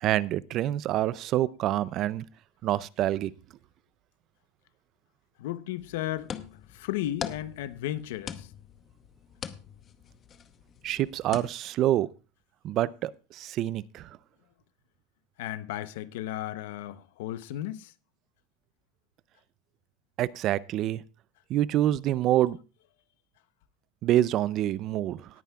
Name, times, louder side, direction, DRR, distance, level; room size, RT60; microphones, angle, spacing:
voice 1, 0.0-2.3 2.6-3.3 10.8-12.1 12.6-14.1 20.2-21.0 21.5-22.6 24.0-25.2, right 13 dB, 40° right, 0.5 m, -26 dB
voice 2, 5.4-6.3 6.7-8.5 15.4-17.9, left 13 dB, 80° left, 0.7 m, -34 dB
sound 1, 5.8-11.5, left 8 dB, 30° left, 0.8 m, -42 dB
18.5 x 9.4 x 2.3 m
supercardioid pair, 150°, 0 cm